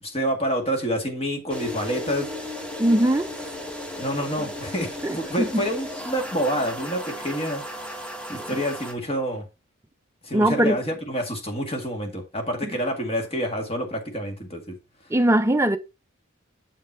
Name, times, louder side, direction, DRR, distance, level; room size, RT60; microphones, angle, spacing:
voice 1, 0.0-2.6 4.0-9.4 10.2-14.7, equal, 30° left, 1.9 m, -28 dB
sound 1, 1.5-8.9, left 1 dB, 5° left, 1.4 m, -35 dB
voice 2, 2.8-3.3 5.0-5.6 8.4-8.6 10.3-10.8 15.1-15.8, right 1 dB, 15° right, 0.5 m, -21 dB
7.5 x 5.3 x 4.4 m
head